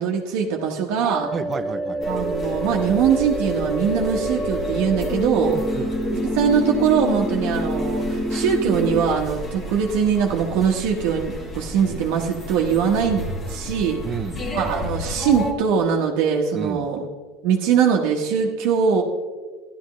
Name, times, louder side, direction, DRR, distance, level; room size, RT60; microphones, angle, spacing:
voice 1, 0.0-1.3 2.1-5.6 6.1-14.0 14.5-17.0 17.4-19.0, right 7 dB, 65° right, 0 dB, 1.2 m, -22 dB
sound 1, 1.0-9.0, equal, 10° left, 1.3 m, -26 dB
voice 2, 1.3-2.0 5.5-5.9 14.0-14.4 16.5-16.9, right 6 dB, 25° right, 13 dB, 0.5 m, -30 dB
sound 2, 2.0-15.5, left 1 dB, 25° left, 1.8 m, -33 dB
13.5 x 11.5 x 3.1 m, 1.4 s
supercardioid pair, 135°, 0 cm